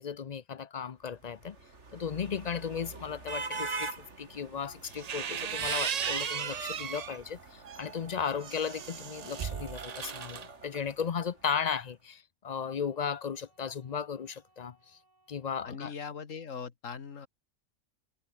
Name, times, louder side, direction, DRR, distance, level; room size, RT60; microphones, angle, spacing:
voice 1, 0.0-1.6 1.9-15.0 15.3-15.9, left 7 dB, 45° left, 0.6 m, -36 dB
sound 1, 1.2-11.5, right 3 dB, 65° right, 3.1 m, -44 dB
sound 2, 4.4-7.6 12.5-15.5, right 2 dB, 80° right, 6.5 m, -68 dB
sound 3, 4.8-7.2 7.7-10.5, right 8 dB, 50° right, 0.5 m, -36 dB
voice 2, 15.6-17.3, left 6 dB, 80° left, 2.0 m, -40 dB
omnidirectional pair, 1.3 m